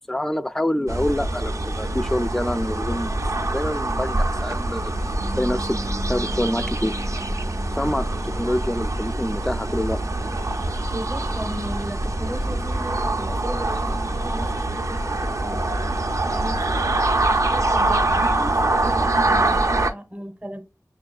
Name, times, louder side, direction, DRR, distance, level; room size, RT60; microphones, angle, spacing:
voice 1, 0.1-4.9 5.4-5.8 6.1-6.9 7.8-10.0, left 1 dB, 5° left, 0.3 m, -26 dB
sound 1, 0.9-19.9, right 2 dB, 55° right, 0.5 m, -24 dB
Bass guitar, 5.2-11.5, left 1 dB, 75° left, 0.7 m, -40 dB
voice 2, 10.9-15.6 16.3-20.6, equal, 15° right, 0.7 m, -35 dB
5.9 x 2.3 x 2.3 m
wide cardioid pair, 50°, 6 cm